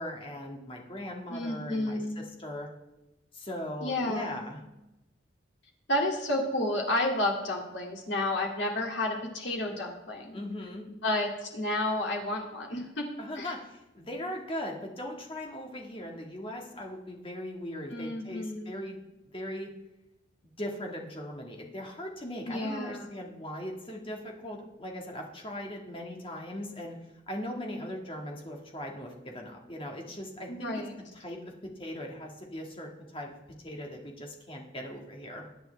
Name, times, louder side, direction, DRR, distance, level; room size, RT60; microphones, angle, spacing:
voice 1, 0.0-2.7 3.3-4.6 10.3-10.8 13.2-19.0 19.2-19.7 20.4-27.0 27.3-30.8 31.1-33.4 33.6-35.4, left 1 dB, 25° left, 1 dB, 1.7 m, -39 dB
voice 2, 1.3-2.2 3.8-4.5 5.9-10.4 11.0-13.1 13.4-13.5 17.9-18.7 22.4-23.1 30.5-30.9, left 1 dB, 60° left, 0 dB, 2.5 m, -31 dB
20.5 x 9.1 x 3.4 m, 0.97 s
head